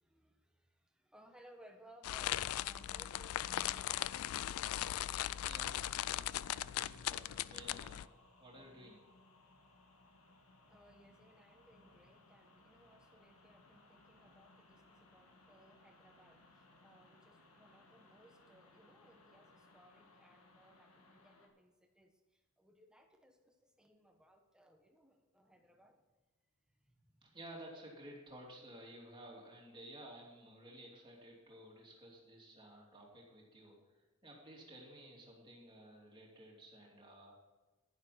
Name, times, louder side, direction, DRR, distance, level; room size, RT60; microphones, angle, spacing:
voice 1, 0.0-4.1 10.7-26.0 26.8-27.2, equal, 5° right, 4 dB, 1.2 m, -64 dB
sound 1, 2.0-8.1, left 13 dB, 65° left, 0.3 m, -39 dB
sound 2, 2.2-21.5, left 2 dB, 85° left, 1.8 m, -63 dB
voice 2, 5.4-9.0 27.2-37.3, right 1 dB, 20° right, -2 dB, 2.9 m, -55 dB
10.5 x 10.5 x 4.2 m, 1.2 s
head